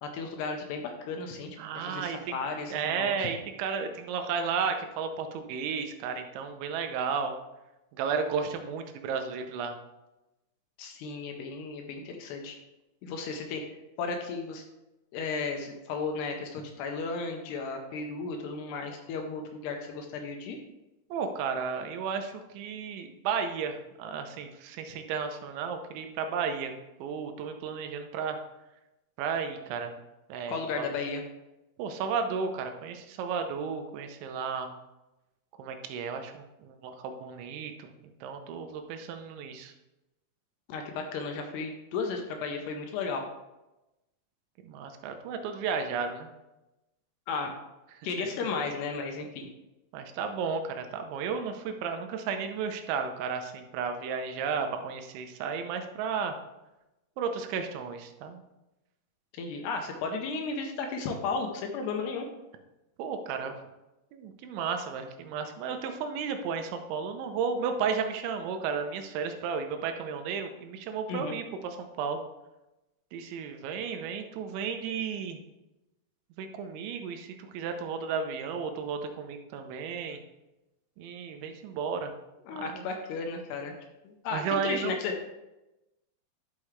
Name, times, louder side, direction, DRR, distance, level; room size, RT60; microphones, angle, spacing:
voice 1, 0.0-3.3 10.8-12.6 13.0-13.6 14.0-14.6 15.1-20.6 30.5-31.2 40.7-43.2 47.3-47.5 48.0-49.5 59.3-62.3 71.1-71.4 82.5-83.7 84.0-85.1, left 4 dB, 75° left, 3 dB, 2.7 m, -34 dB
voice 2, 1.6-2.4 2.7-7.3 7.9-9.8 21.1-26.7 27.0-28.4 29.2-30.0 30.3-30.9 31.8-34.8 35.6-37.9 38.2-39.7 44.6-46.3 48.2-48.3 49.9-56.4 57.2-58.4 63.0-63.5 64.1-72.2 73.1-75.4 76.4-80.2 81.0-82.2 82.5-82.9 84.3-84.9, right 6 dB, 85° right, 6 dB, 3.2 m, -33 dB
11.5 x 6.0 x 3.2 m, 0.98 s
omnidirectional pair, 5.2 m